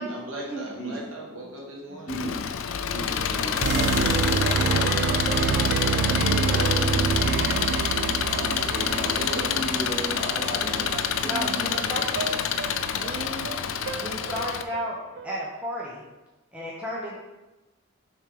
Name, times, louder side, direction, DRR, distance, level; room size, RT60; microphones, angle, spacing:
voice 1, 0.1-2.2 3.1-3.9 9.0-9.5, right 1 dB, 85° right, -3 dB, 1.8 m, -38 dB
voice 2, 1.9-2.3 2.9-5.6 6.0-7.9 8.3-10.8 11.1-12.2, equal, 20° left, -7 dB, 1.8 m, -36 dB
Engine, 2.1-14.6, left 8 dB, 80° left, 0.4 m, -27 dB
sound 1, 3.0-11.1, left 1 dB, 45° left, 1.3 m, -51 dB
sound 2, 3.6-15.3, right 5 dB, 55° right, 0.3 m, -28 dB
voice 3, 11.2-12.4 12.6-16.0 16.5-17.2, equal, 5° right, -6 dB, 0.8 m, -34 dB
6.3 x 3.8 x 4.8 m, 1.1 s
head